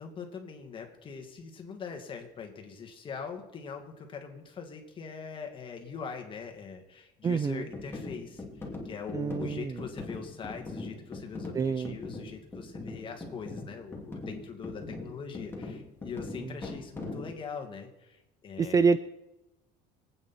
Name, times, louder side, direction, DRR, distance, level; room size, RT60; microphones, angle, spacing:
voice 1, 0.0-18.9, left 6 dB, 30° left, 3 dB, 2.5 m, -42 dB
voice 2, 7.2-7.7 9.1-9.7 11.5-11.9 18.6-19.0, right 5 dB, 20° right, 14 dB, 0.4 m, -26 dB
sound 1, 7.7-17.4, left 2 dB, 15° left, 3.0 m, -41 dB
24.5 x 9.1 x 4.5 m, 0.97 s
cardioid pair, 140°, 17 cm